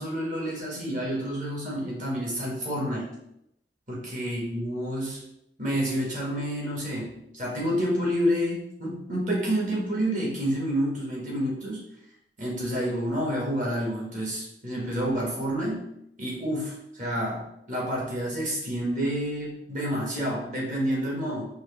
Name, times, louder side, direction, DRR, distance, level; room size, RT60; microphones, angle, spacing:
voice 1, 0.0-3.1 3.9-5.2 5.6-11.8 12.4-15.9 16.2-17.4 17.7-21.4, equal, 45° right, -4 dB, 1.5 m, -29 dB
4.6 x 2.8 x 3.3 m, 0.80 s
head